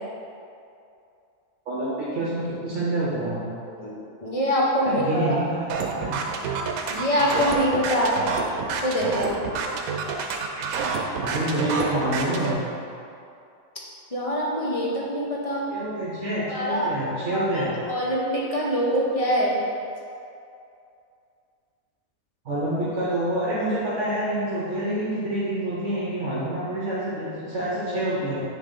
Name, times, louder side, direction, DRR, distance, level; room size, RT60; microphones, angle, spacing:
voice 1, 1.7-3.5 4.9-6.2 10.1-10.2 11.2-12.6 15.7-17.7 22.4-28.4, right 1 dB, 60° right, -8 dB, 1.3 m, -27 dB
voice 2, 3.6-5.5 6.9-8.1 8.8-9.4 14.1-15.6 16.5-16.9 17.3-19.6, equal, 30° left, -5 dB, 0.8 m, -24 dB
sound 1, 5.7-12.5, right 5 dB, 85° right, 1.1 m, -28 dB
6.2 x 3.2 x 5.3 m, 2.5 s
omnidirectional pair, 1.5 m